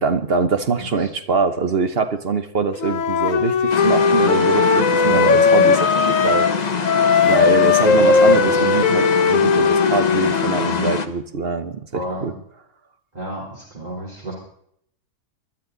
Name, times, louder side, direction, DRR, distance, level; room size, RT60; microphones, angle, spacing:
voice 1, 0.0-6.5 7.3-12.3, right 4 dB, 45° right, 9 dB, 1.0 m, -23 dB
voice 2, 0.8-1.1 5.0-5.3 7.2-7.4 7.9-8.6 11.9-12.3 13.1-14.3, right 1 dB, 25° right, -4 dB, 3.6 m, -31 dB
Wind instrument woodwind instrument, 2.8-6.6 6.8-10.9, left 5 dB, 55° left, 1.2 m, -17 dB
sound 1, 3.7-11.1, left 5 dB, 30° left, 0.9 m, -24 dB
20.5 x 12.0 x 3.9 m, 0.68 s
omnidirectional pair, 1.7 m